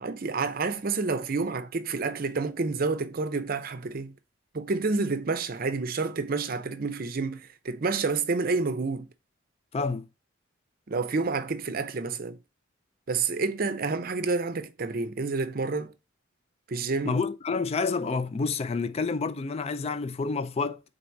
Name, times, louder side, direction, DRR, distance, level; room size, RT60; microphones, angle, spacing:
voice 1, 0.0-4.1 4.5-9.1 10.9-12.4 13.1-15.9 16.7-17.2, right 4 dB, 45° right, 0.5 m, -29 dB
voice 2, 9.7-10.1 17.0-20.8, left 4 dB, 30° left, 0.3 m, -29 dB
4.5 x 3.9 x 2.6 m
head